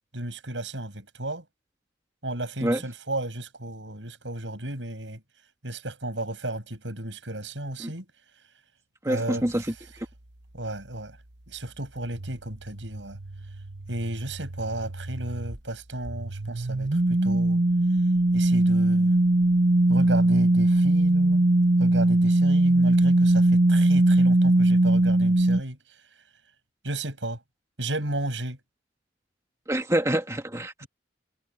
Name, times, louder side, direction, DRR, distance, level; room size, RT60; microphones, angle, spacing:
voice 1, 0.1-1.4 2.2-5.2 5.6-8.1 9.1-9.7 10.5-11.2 11.5-13.2 13.9-17.6 18.3-19.1 19.9-21.5 21.8-25.8 26.8-27.4 27.8-28.6 30.8-30.9, right 1 dB, 80° right, 7.1 m, -33 dB
voice 2, 9.0-9.7 9.9-10.1 29.7-30.8, right 1 dB, 15° right, 2.1 m, -26 dB
sound 1, 12.1-15.6 16.0-25.6, right 1 dB, 65° right, 1.3 m, -21 dB
head